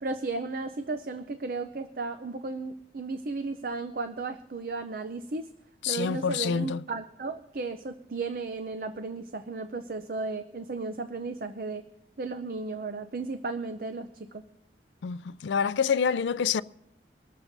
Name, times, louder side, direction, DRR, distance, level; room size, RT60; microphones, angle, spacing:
voice 1, 0.0-5.5 5.9-11.8 12.2-14.4, right 3 dB, 55° right, 0.6 m, -34 dB
voice 2, 5.8-6.8 15.0-16.6, left 6 dB, 85° left, 0.4 m, -27 dB
24.0 x 13.0 x 2.6 m
head